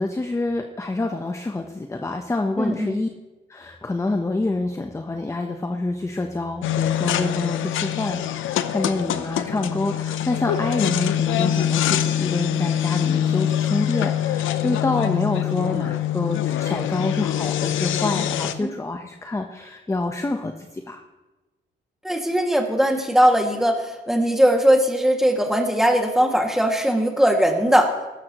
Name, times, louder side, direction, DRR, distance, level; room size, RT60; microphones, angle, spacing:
voice 1, 0.0-3.1 3.5-21.0, left 2 dB, 15° left, 4 dB, 0.9 m, -27 dB
voice 2, 2.6-2.9 18.6-18.7 22.0-27.9, equal, ahead, 2 dB, 2.2 m, -19 dB
sound 1, 6.6-18.5, left 10 dB, 80° left, 0.8 m, -24 dB
17.0 x 13.0 x 3.1 m, 1.1 s
cardioid pair, 90°, 20 cm